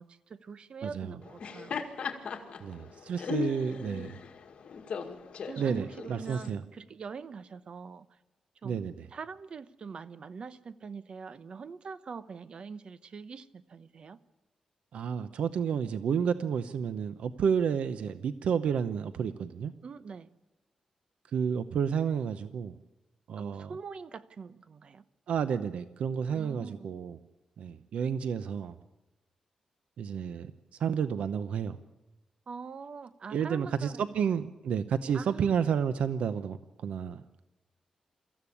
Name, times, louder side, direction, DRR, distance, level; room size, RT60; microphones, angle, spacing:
voice 1, 0.0-1.9 3.3-3.5 4.0-4.1 5.5-8.2 8.6-8.8 9.1-14.2 19.8-20.3 23.4-25.1 26.3-26.9 32.5-34.4 35.1-35.7, right 5 dB, 55° right, 14 dB, 0.9 m, -44 dB
voice 2, 0.8-1.2 2.6-4.1 5.6-6.6 8.6-9.0 14.9-19.7 21.3-22.8 23.3-23.7 25.3-27.2 27.6-28.8 30.0-30.5 30.8-31.8 33.3-37.4, right 7 dB, 90° right, 12 dB, 0.7 m, -31 dB
Laughter, 1.2-6.5, left 6 dB, 70° left, 2.1 m, -38 dB
24.0 x 14.5 x 8.5 m, 1.1 s
cardioid pair, 105°, 2 cm